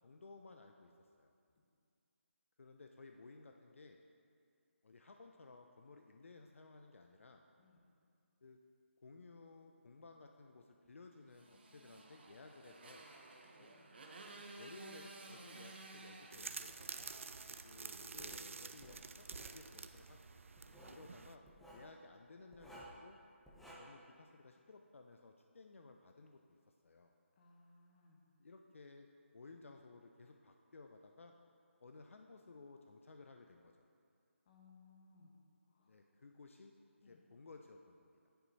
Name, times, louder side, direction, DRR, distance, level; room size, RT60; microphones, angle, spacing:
voice 1, 0.0-1.3 2.6-4.0 4.8-7.4 8.4-8.6 9.0-13.1 13.6-13.7 14.6-17.1 17.6-20.3 20.8-21.4 21.7-23.2 23.8-27.1 28.4-29.1 29.3-31.3 31.8-33.9 35.9-38.2, left 3 dB, 70° left, 4 dB, 0.4 m, -58 dB
Motorcycle, 11.3-18.0, right 3 dB, 50° right, 0.7 m, -55 dB
voice 2, 13.6-13.9 27.4-28.2 34.5-35.3 35.7-35.9 37.0-37.2, left 4 dB, 35° left, 0 dB, 0.9 m, -65 dB
sound 1, 16.3-21.3, right 4 dB, 70° right, 0.3 m, -49 dB
Writing, 18.2-18.4 18.8-19.6 20.6-21.0 21.5-21.9 22.5-23.0 23.5-23.7, right 1 dB, ahead, 0.5 m, -56 dB
10.0 x 4.4 x 2.7 m, 2.4 s
figure-of-eight pair, 155°, 7 cm